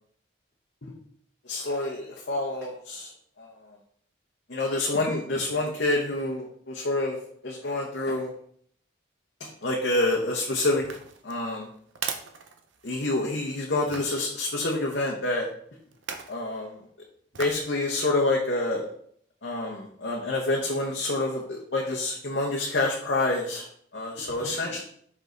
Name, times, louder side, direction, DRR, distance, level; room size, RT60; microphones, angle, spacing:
voice 1, 1.5-3.1 3.4-3.5 4.5-7.2 7.4-8.3 9.6-10.8 11.2-11.7 12.8-15.5 16.3-16.8 17.4-18.8 19.4-23.7 23.9-24.8, left 2 dB, 55° left, -1 dB, 0.9 m, -27 dB
sound 1, 10.8-13.2 13.9-14.2 15.9-16.4 17.3-17.7 18.2-18.3, right 6 dB, 70° right, 0.7 m, -38 dB
5.5 x 5.3 x 3.9 m, 0.64 s
head